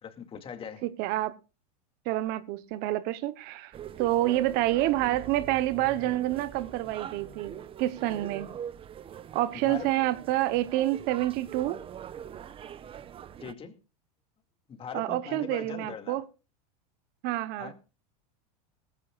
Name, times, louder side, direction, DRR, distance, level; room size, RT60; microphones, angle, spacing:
voice 1, 0.0-0.8 9.5-9.9 13.4-13.8 14.7-16.2 17.6-17.7, left 7 dB, 30° left, 2.3 m, -40 dB
voice 2, 0.8-1.3 2.0-8.5 9.3-11.8 14.9-16.3 17.2-17.7, right 15 dB, 55° right, 1.0 m, -28 dB
sound 1, 3.7-13.5, right 9 dB, 30° right, 0.9 m, -43 dB
18.5 x 15.5 x 2.4 m
hypercardioid pair, 110°, 20 cm